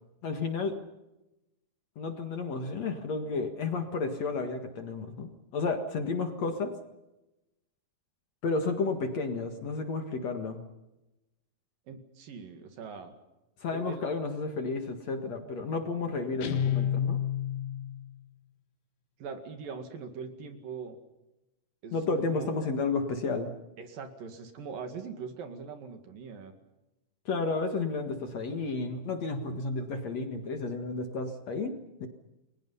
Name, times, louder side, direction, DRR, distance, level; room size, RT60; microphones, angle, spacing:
voice 1, 0.2-0.8 2.0-6.8 8.4-10.6 13.6-17.2 21.9-23.5 27.3-32.1, left 4 dB, 50° left, 5 dB, 2.5 m, -32 dB
voice 2, 11.9-13.1 13.7-14.1 19.2-21.0 21.8-22.0 22.3-22.5 23.8-26.5, right 5 dB, 65° right, 6 dB, 3.7 m, -41 dB
Guitar, 16.4-18.1, left 10 dB, 85° left, 3.7 m, -30 dB
30.0 x 22.5 x 5.7 m, 0.96 s
omnidirectional pair, 4.4 m